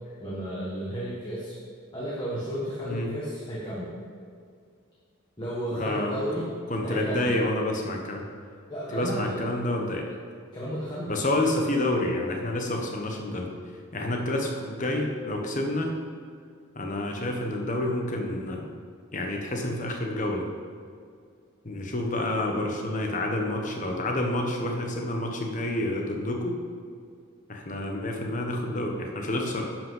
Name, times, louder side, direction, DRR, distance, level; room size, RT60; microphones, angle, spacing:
voice 1, 0.2-1.5 1.9-4.0 5.4-6.5 6.8-7.4 8.7-9.4 10.5-11.1, equal, 20° left, -7 dB, 1.4 m, -33 dB
voice 2, 5.7-6.2 6.7-8.2 8.9-10.1 11.1-13.5 13.9-15.9 16.7-18.7 19.1-20.5 21.6-26.6 27.5-29.7, left 1 dB, 35° left, 1 dB, 1.2 m, -28 dB
11.0 x 6.0 x 5.6 m, 2.2 s
head